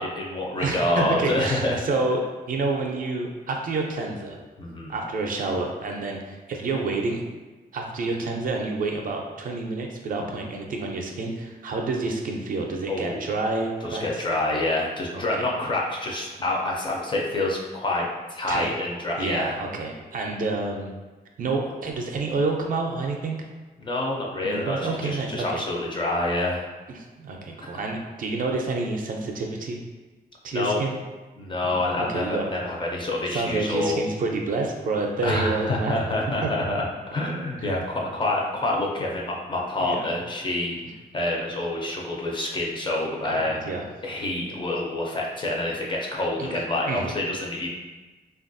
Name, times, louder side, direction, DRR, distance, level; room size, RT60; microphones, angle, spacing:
voice 1, 0.0-1.8 4.6-5.0 10.2-10.3 12.9-13.3 13.8-19.6 23.8-26.7 27.7-27.8 30.5-30.8 31.4-34.0 35.2-40.8 41.1-43.6 44.0-47.7, left 2 dB, 30° left, -2 dB, 0.4 m, -27 dB
voice 2, 0.6-2.2 2.5-4.4 4.9-7.2 7.7-14.3 15.1-15.5 18.5-18.7 19.2-20.9 21.4-23.4 24.4-25.6 26.9-29.8 30.4-31.0 31.6-31.8 32.1-32.5 33.3-36.0 36.4-36.5 37.7-37.8 39.8-40.1 43.3-43.8 46.4-47.2, right 3 dB, 50° right, 2 dB, 0.4 m, -28 dB
3.2 x 2.3 x 2.5 m, 1.2 s
wide cardioid pair, 175°, 17 cm